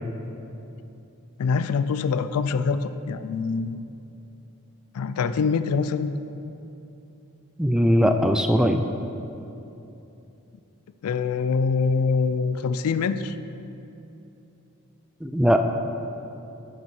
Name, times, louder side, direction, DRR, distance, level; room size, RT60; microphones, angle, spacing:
voice 1, 1.4-3.8 4.9-6.2 11.0-13.3, left 5 dB, 70° left, 12 dB, 0.4 m, -24 dB
voice 2, 7.6-8.8 15.2-15.6, equal, 5° right, 6 dB, 0.3 m, -20 dB
8.8 x 6.7 x 4.7 m, 2.9 s
head